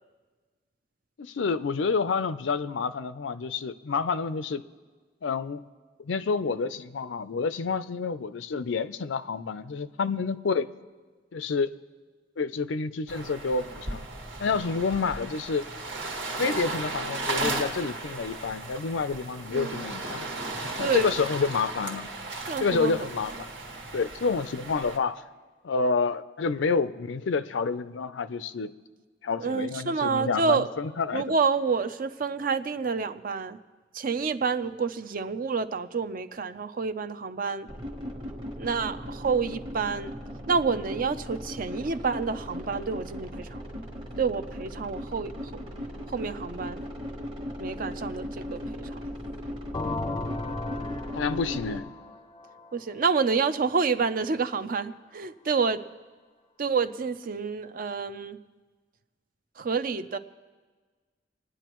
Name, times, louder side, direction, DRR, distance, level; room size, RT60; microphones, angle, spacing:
voice 1, 1.2-4.6 5.2-5.7 6.0-10.7 11.3-11.7 12.4-14.0 14.4-15.7 16.4-20.3 20.8-22.1 22.6-23.5 23.9-25.2 25.6-28.7 29.2-31.2 51.1-51.9, left 4 dB, 90° left, 13 dB, 0.5 m, -28 dB
sound 1, 13.1-25.0, right 2 dB, 80° right, 1.7 m, -35 dB
voice 2, 19.5-19.8 20.8-21.1 22.5-23.1 29.4-30.7 31.1-33.6 33.9-37.7 38.6-40.1 40.5-43.6 44.2-45.3 46.1-46.8 47.6-49.1 52.7-55.8 56.6-58.4 59.6-60.2, right 5 dB, 50° right, 12 dB, 0.5 m, -28 dB
sound 2, 37.7-51.8, equal, 30° right, 1.3 m, -38 dB
sound 3, 49.7-53.5, left 2 dB, 25° left, 0.4 m, -36 dB
27.5 x 9.9 x 3.0 m, 1.4 s
head